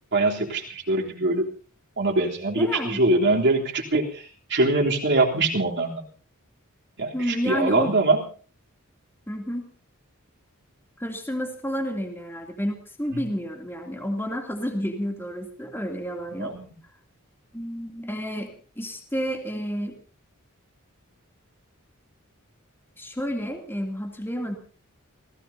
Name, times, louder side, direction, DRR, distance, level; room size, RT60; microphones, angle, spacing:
voice 1, 0.1-1.5 2.0-6.1 7.0-8.2 13.1-13.2 16.4-16.7, right 2 dB, 55° right, -2 dB, 3.6 m, -23 dB
voice 2, 2.6-3.0 7.1-7.9 9.3-9.7 11.0-16.6 17.5-20.0 23.0-24.5, equal, 10° left, 2 dB, 2.9 m, -30 dB
29.5 x 17.0 x 2.8 m, 0.41 s
head